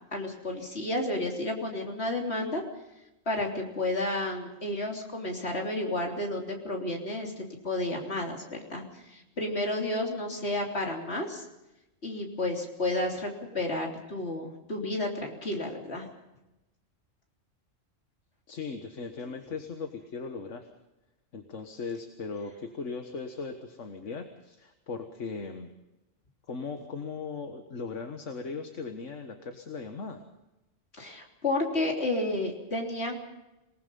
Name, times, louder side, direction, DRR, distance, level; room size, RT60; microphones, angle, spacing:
voice 1, 0.1-2.6 3.3-11.5 12.0-16.1 30.9-33.2, left 1 dB, 55° left, 1 dB, 3.7 m, -31 dB
voice 2, 18.5-20.7 21.3-25.7 26.5-30.2, left 4 dB, 75° left, 6 dB, 1.8 m, -38 dB
27.0 x 19.0 x 5.5 m, 0.96 s
omnidirectional pair, 1.3 m